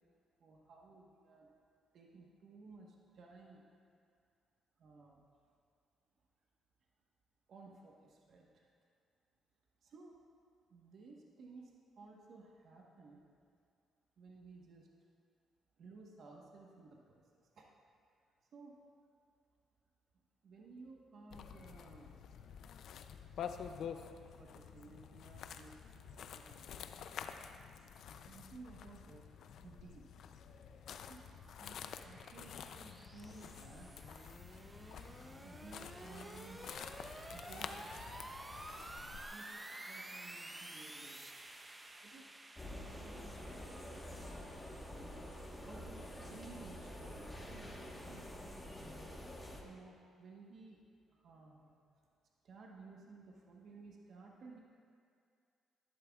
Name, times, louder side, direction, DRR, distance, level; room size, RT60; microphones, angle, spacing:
voice 1, 0.4-1.5 1.9-3.6 4.8-5.2 7.5-8.7 9.8-10.2 10.7-13.2 14.2-14.9 15.8-17.7 18.5-18.8 20.4-22.2 23.9-25.8 26.3-26.7 28.2-29.3 29.6-30.1 31.0-34.0 35.4-36.7 37.3-38.1 39.1-41.2 42.0-42.3 42.7-43.2 45.7-48.3 49.6-50.8 51.1-51.7 52.4-54.6, right 3 dB, 65° right, -1 dB, 1.2 m, -56 dB
sound 1, 21.3-39.3, left 7 dB, 70° left, 0.4 m, -49 dB
sound 2, 30.3-46.3, right 1 dB, 15° right, 0.6 m, -52 dB
sound 3, 42.6-49.6, left 1 dB, 15° left, 1.2 m, -48 dB
12.0 x 11.0 x 2.4 m, 2.3 s
cardioid pair, 90°, 0 cm